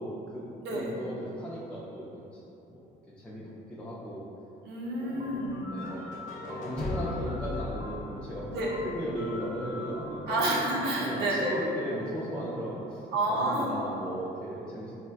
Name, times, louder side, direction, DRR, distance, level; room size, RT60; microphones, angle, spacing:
voice 1, 0.0-0.5 0.7-2.1 2.7-2.8 3.2-4.3 5.0-5.3 5.7-6.0 6.4-10.6 11.0-15.0, equal, 5° left, -8 dB, 0.4 m, -37 dB
voice 2, 4.6-5.7 8.5-8.7 10.3-11.6 13.1-13.8, right 1 dB, 80° right, -4 dB, 0.7 m, -29 dB
sound 1, 5.2-13.0, left 3 dB, 40° right, 0.6 m, -44 dB
sound 2, 5.8-9.7, left 2 dB, 50° left, 0.6 m, -38 dB
4.2 x 2.4 x 2.3 m, 2.8 s
cardioid pair, 110°, 17 cm